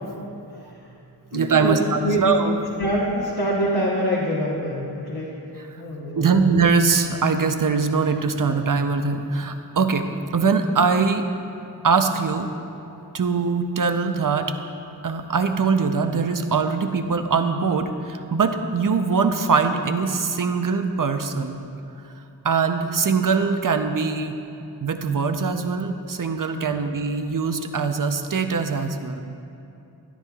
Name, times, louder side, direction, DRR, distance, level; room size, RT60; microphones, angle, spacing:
voice 1, 0.5-0.9 1.3-2.2 2.8-5.3 5.8-6.5 26.7-26.9, equal, 65° left, -5 dB, 1.2 m, -26 dB
voice 2, 1.3-2.6 6.1-10.1 10.3-11.2 11.8-12.5 13.1-14.5 15.0-21.6 22.4-24.4 24.8-29.2, right 5 dB, 50° right, 7 dB, 0.6 m, -22 dB
13.0 x 10.5 x 2.3 m, 2.7 s
wide cardioid pair, 50°, 41 cm